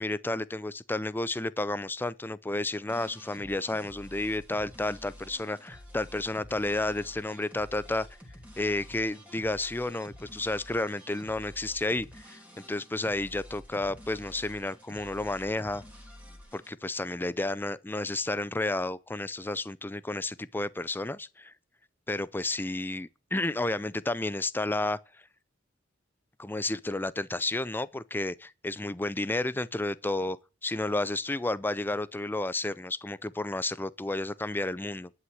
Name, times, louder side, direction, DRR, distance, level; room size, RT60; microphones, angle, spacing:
voice 1, 0.0-8.1 8.6-12.4 12.7-15.8 16.5-21.5 22.1-25.0 26.4-30.4 30.6-35.1, left 2 dB, 10° left, 0.5 m, -31 dB
sound 1, 2.9-16.7, left 1 dB, 10° right, 3.1 m, -49 dB
11.0 x 5.8 x 7.8 m
head